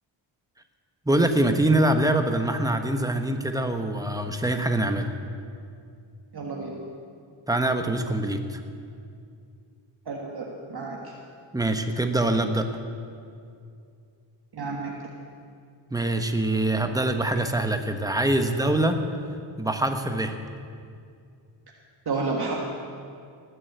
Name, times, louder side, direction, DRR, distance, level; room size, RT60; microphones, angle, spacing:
voice 1, 1.1-5.1 7.5-8.6 11.5-12.7 15.9-19.0 19.6-20.4, right 1 dB, 5° right, 6 dB, 1.1 m, -24 dB
voice 2, 6.3-6.8 10.0-11.1 14.5-14.9 22.0-22.6, right 3 dB, 50° right, -1 dB, 1.7 m, -31 dB
19.0 x 8.0 x 8.0 m, 2.4 s
wide cardioid pair, 105°, 49 cm